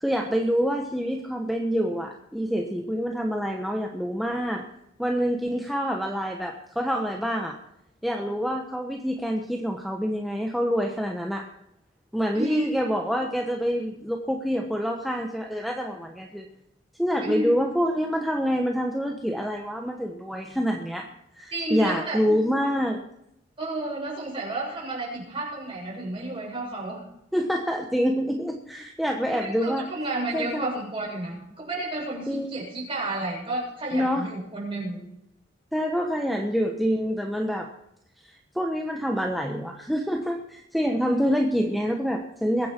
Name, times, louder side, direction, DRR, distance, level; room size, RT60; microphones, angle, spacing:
voice 1, 0.0-4.6 5.0-7.5 8.0-11.4 12.1-16.5 17.0-21.0 21.4-23.0 27.3-29.9 30.3-30.6 32.3-32.6 33.9-34.3 35.7-37.7 38.2-42.7, equal, ahead, 1 dB, 1.2 m, -26 dB
voice 2, 12.3-12.8 17.2-17.6 21.5-22.2 23.6-27.0 29.3-35.0, right 2 dB, 30° right, -4 dB, 7.1 m, -31 dB
22.5 x 9.7 x 4.5 m, 0.79 s
head